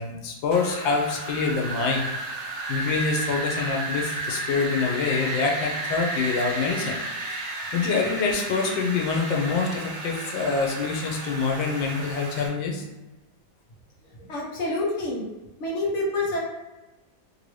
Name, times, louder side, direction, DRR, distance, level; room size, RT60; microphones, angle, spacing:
voice 1, 0.0-2.0 2.7-7.0 7.7-12.8, left 4 dB, 85° left, 1 dB, 1.3 m, -26 dB
Wind, 0.5-12.5, right 2 dB, 70° right, 1.3 m, -33 dB
voice 2, 14.2-15.3 15.6-16.4, left 2 dB, 50° left, -4 dB, 1.1 m, -27 dB
3.3 x 2.6 x 3.1 m, 1.1 s
omnidirectional pair, 2.0 m